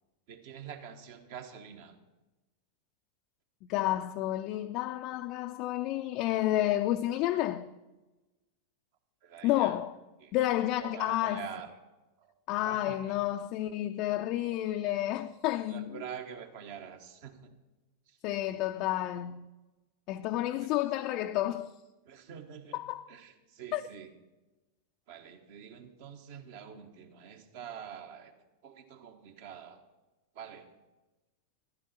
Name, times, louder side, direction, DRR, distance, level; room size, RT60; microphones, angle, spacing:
voice 1, 0.3-2.0 9.2-9.8 10.2-10.3 10.8-11.7 12.2-12.3 12.6-13.2 15.7-17.5 18.1-18.2 20.5-20.7 22.0-22.8 23.1-24.1 25.1-28.3 28.6-29.8 30.3-30.7, right 8 dB, 50° right, 1.4 m, -46 dB
voice 2, 3.7-7.7 9.4-9.9 10.3-11.5 12.5-16.0 18.2-19.5 20.1-21.7 22.7-23.0 23.7-23.8, left 14 dB, 40° left, 0.5 m, -30 dB
13.5 x 12.0 x 4.3 m
figure-of-eight pair, 90°, 0 cm